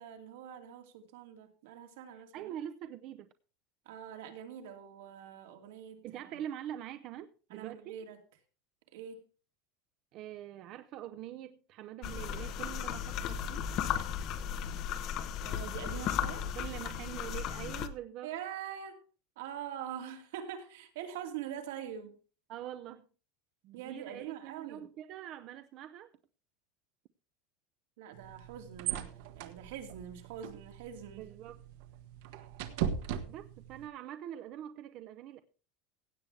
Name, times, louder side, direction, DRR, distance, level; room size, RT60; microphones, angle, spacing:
voice 1, 0.0-2.6 3.8-6.3 7.5-8.2 8.9-9.2 15.4-16.5 18.2-19.0 19.4-22.2 23.7-24.9 28.0-31.3, right 9 dB, 80° right, 2.5 m, -44 dB
voice 2, 2.3-3.3 6.0-8.0 10.1-13.6 16.6-18.3 22.5-23.1 23.6-26.1 31.2-31.6 33.3-35.4, right 11 dB, 40° right, 0.6 m, -44 dB
sound 1, 12.0-17.9, left 9 dB, 40° left, 0.9 m, -35 dB
sound 2, 28.1-33.9, right 9 dB, 65° right, 1.4 m, -39 dB
16.5 x 8.4 x 3.4 m
supercardioid pair, 170°, 0 cm